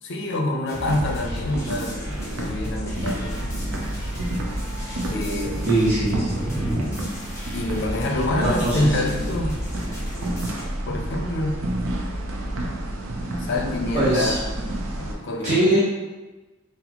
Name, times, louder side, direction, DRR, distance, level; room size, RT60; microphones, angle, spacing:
voice 1, 0.0-3.4 5.1-5.7 7.5-9.6 10.9-11.6 13.4-14.6 15.0-15.8, left 2 dB, 60° left, 2 dB, 0.5 m, -27 dB
sound 1, 0.7-10.6, left 1 dB, 15° left, 0.9 m, -34 dB
sound 2, 0.9-15.1, right 1 dB, 90° right, 0.5 m, -30 dB
voice 2, 5.6-6.8 8.4-9.0 9.9-10.0 13.9-14.4 15.4-15.8, right 1 dB, 35° right, -10 dB, 0.7 m, -22 dB
4.1 x 2.0 x 2.8 m, 1.2 s
head